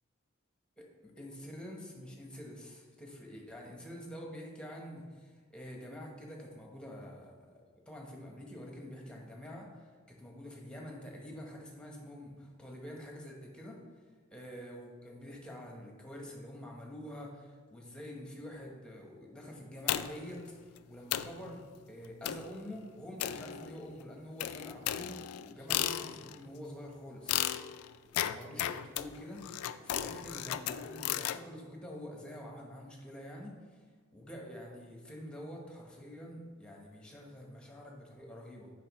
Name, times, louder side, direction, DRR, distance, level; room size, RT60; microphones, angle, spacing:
voice 1, 0.8-7.3 7.9-13.8 14.3-27.5 28.2-29.4 29.8-33.8 34.1-38.7, equal, 5° left, -1 dB, 1.0 m, -47 dB
sound 1, 19.9-20.3 20.8-20.9 21.1-21.4 22.2-22.6 23.2-23.9 24.4-26.4 27.3-31.4, left 12 dB, 85° left, 0.3 m, -35 dB
8.8 x 5.2 x 3.1 m, 1.5 s
head